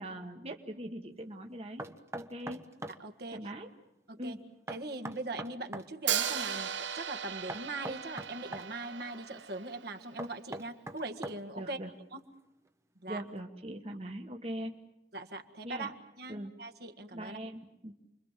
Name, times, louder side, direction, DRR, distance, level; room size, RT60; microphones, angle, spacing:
voice 1, 0.0-2.7 3.3-3.7 4.2-4.4 11.6-11.9 13.1-14.7 15.6-15.9 16.3-16.5 17.1-17.9, right 1 dB, 35° right, 3 dB, 1.5 m, -41 dB
Knock, 1.8-3.0 4.7-5.9 7.5-8.7 10.2-11.6, right 1 dB, 15° right, 1.0 m, -41 dB
voice 2, 3.0-3.4 4.1-4.4 4.7-11.8 12.1-12.2 13.0-13.2 15.1-17.4, right 2 dB, 60° right, 6 dB, 1.9 m, -41 dB
Hi-hat, 6.1-10.0, right 8 dB, 85° right, 1.5 m, -36 dB
29.5 x 23.0 x 7.5 m, 0.88 s
head